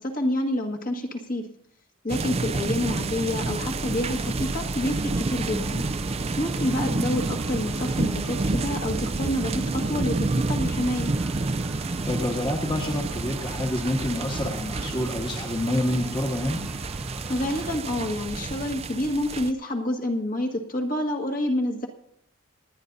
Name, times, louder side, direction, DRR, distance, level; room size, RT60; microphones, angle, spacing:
voice 1, 0.0-1.4 2.0-5.8 6.4-11.1 17.3-21.9, left 1 dB, 40° left, 2 dB, 1.6 m, -28 dB
sound 1, 2.1-19.5, right 3 dB, 30° right, 0.4 m, -29 dB
sound 2, 3.6-17.8, right 1 dB, 5° right, 0.8 m, -41 dB
voice 2, 6.8-7.3 11.8-16.6, left 1 dB, 25° left, 1 dB, 1.4 m, -28 dB
28.0 x 10.0 x 2.7 m, 0.77 s
head